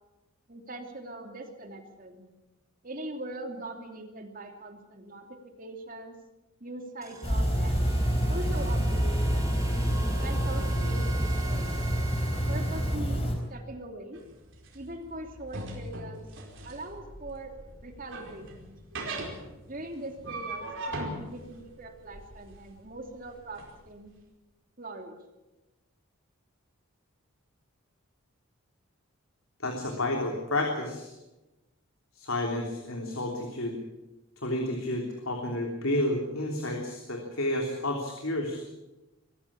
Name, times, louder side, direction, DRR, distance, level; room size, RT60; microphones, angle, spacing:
voice 1, 0.5-2.2 2.8-6.2 6.6-7.8 8.3-9.6 10.2-11.8 12.5-14.2 14.7-16.2 16.6-17.5 17.8-18.8 19.6-24.1 24.8-25.2, right 1 dB, 40° right, 4 dB, 2.9 m, -41 dB
sound 1, 7.0-13.0, right 3 dB, 15° right, 2.5 m, -43 dB
sound 2, 7.2-13.4, equal, 25° left, 4.0 m, -27 dB
sound 3, 14.1-23.7, right 2 dB, 60° right, 4.8 m, -40 dB
voice 2, 29.6-31.1 32.1-33.8 34.4-38.6, left 1 dB, 70° left, 2 dB, 3.2 m, -30 dB
23.5 x 15.0 x 8.6 m, 1.0 s
head